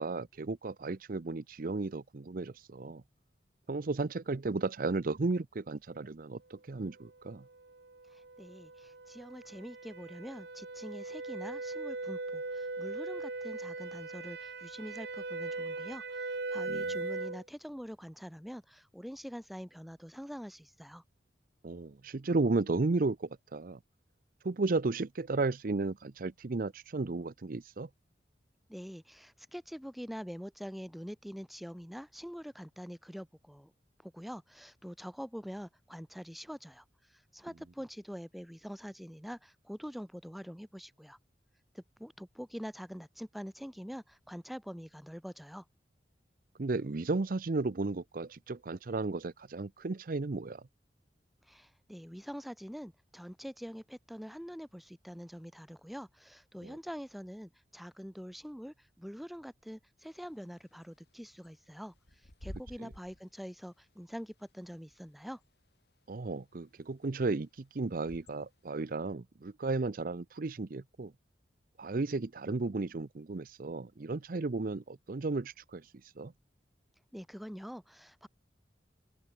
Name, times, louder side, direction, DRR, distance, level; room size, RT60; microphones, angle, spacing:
voice 1, 0.0-3.0 3.7-7.4 16.7-16.9 21.6-23.8 24.4-27.9 46.6-50.6 56.6-56.8 62.8-62.9 66.1-71.1 71.8-75.9 76.2-76.3, right 3 dB, 50° right, 0.6 m, -34 dB
sound 1, 7.5-17.4, right 3 dB, 70° right, 1.5 m, -40 dB
voice 2, 8.1-21.0 28.7-33.7 34.0-41.2 41.7-45.6 51.5-65.4 77.1-78.3, equal, ahead, 4.1 m, -45 dB
Bird / Wind, 60.0-68.7, equal, 65° left, 4.4 m, -54 dB
open air
head